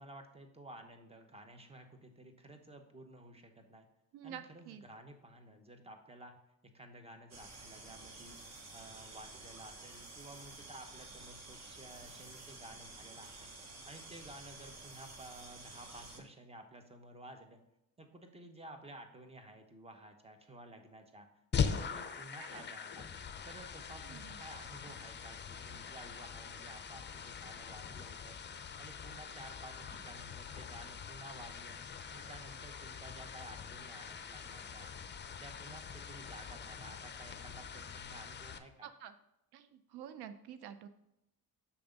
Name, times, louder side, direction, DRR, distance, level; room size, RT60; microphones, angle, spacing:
voice 1, 0.0-3.9 4.2-6.4 6.7-13.5 13.8-17.6 18.0-21.3 21.6-23.1 23.4-28.4 28.8-31.8 32.1-34.9 35.4-38.9, right 1 dB, 15° right, 5 dB, 1.0 m, -53 dB
voice 2, 4.1-4.8 22.4-22.6 24.1-24.4 38.8-39.1 39.5-40.9, right 9 dB, 80° right, 11 dB, 0.5 m, -49 dB
sound 1, 7.3-16.2, right 3 dB, 40° right, 1.2 m, -51 dB
sound 2, 21.5-38.6, left 6 dB, 30° left, 0.6 m, -42 dB
7.0 x 3.5 x 5.1 m, 0.87 s
cardioid pair, 90°, 40 cm